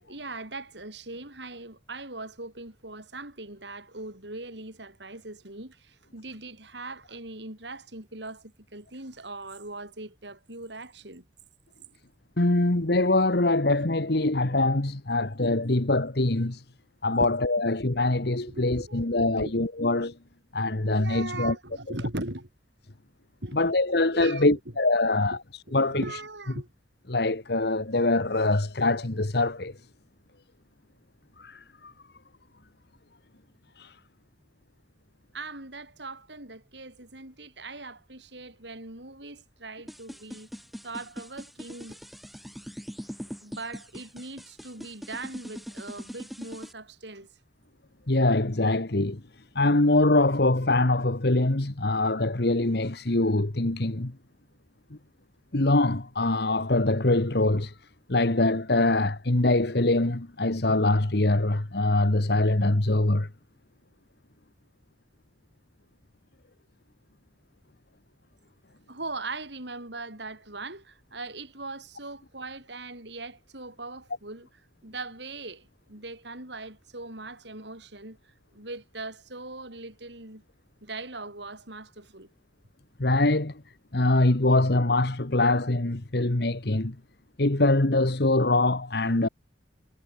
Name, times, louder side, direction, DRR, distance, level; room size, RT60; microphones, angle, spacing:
voice 1, 0.0-11.3 17.2-17.3 18.5-19.5 20.6-22.5 23.4-23.7 24.1-24.6 25.3-25.4 25.7-26.7 35.3-40.5 40.8-41.9 43.4-47.3 68.9-74.5 74.8-78.2 78.5-80.4 80.8-82.3, right 2 dB, 70° right, 7.3 m, -40 dB
voice 2, 12.4-16.6 17.0-20.1 20.5-21.5 23.5-25.4 25.7-26.0 27.1-29.7 31.4-31.9 33.8-34.0 48.1-49.2 49.5-54.1 55.5-57.7 58.1-63.3 83.0-83.5 83.9-86.9 87.4-89.3, left 2 dB, 60° left, 1.5 m, -23 dB
sound 1, 39.9-46.7, equal, ahead, 3.6 m, -41 dB
head